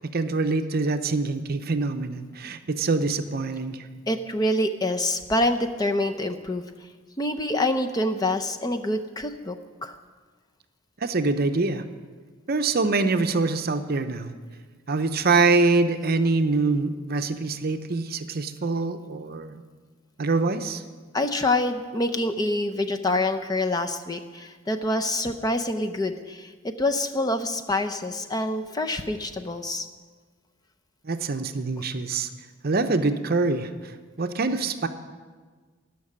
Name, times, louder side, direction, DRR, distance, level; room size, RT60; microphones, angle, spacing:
voice 1, 0.1-3.9 11.0-11.8 12.5-14.3 14.9-19.6 20.2-20.8 31.0-32.3 32.6-34.9, right 3 dB, 50° right, 9 dB, 0.7 m, -25 dB
voice 2, 4.1-6.6 7.2-10.0 21.1-29.9, left 1 dB, 20° left, 6 dB, 0.6 m, -26 dB
14.0 x 6.0 x 9.8 m, 1.5 s
head